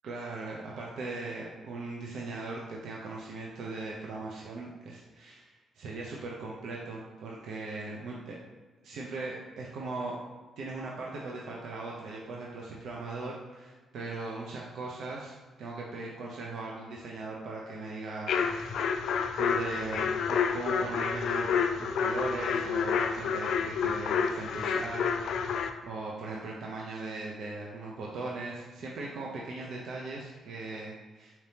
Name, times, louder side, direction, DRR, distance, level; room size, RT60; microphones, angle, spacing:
voice 1, 0.0-8.4 8.8-10.2 10.6-18.7 19.3-31.3, right 3 dB, 75° right, -3 dB, 0.6 m, -39 dB
sound 1, 18.3-25.7, left 6 dB, 75° left, 0.3 m, -29 dB
4.3 x 3.4 x 2.8 m, 1.3 s
cardioid pair, 95°, 0 cm